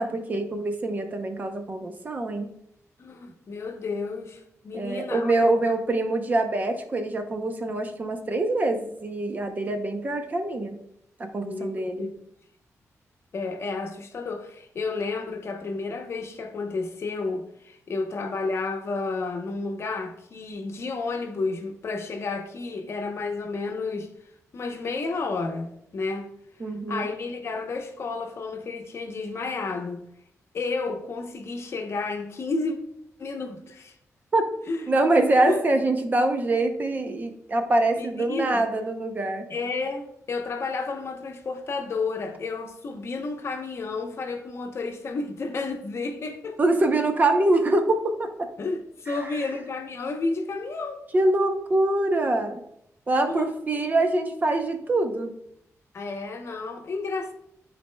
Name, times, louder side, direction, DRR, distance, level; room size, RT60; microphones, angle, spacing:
voice 1, 0.0-2.5 4.7-10.8 11.2-12.1 26.6-27.1 34.3-34.4 34.9-39.5 46.6-48.5 49.1-49.3 51.1-52.6 53.1-55.3, right 2 dB, 30° right, 0.6 m, -24 dB
voice 2, 3.0-5.3 5.6-5.7 11.4-12.1 13.3-24.1 24.5-26.3 26.9-30.0 30.5-32.8 33.2-33.9 34.7-34.8 35.4-35.6 38.0-38.7 39.5-46.6 48.6-51.0 53.3-53.8 55.9-57.3, left 3 dB, 50° left, 0.8 m, -31 dB
11.5 x 4.1 x 2.2 m
wide cardioid pair, 155°, 6 cm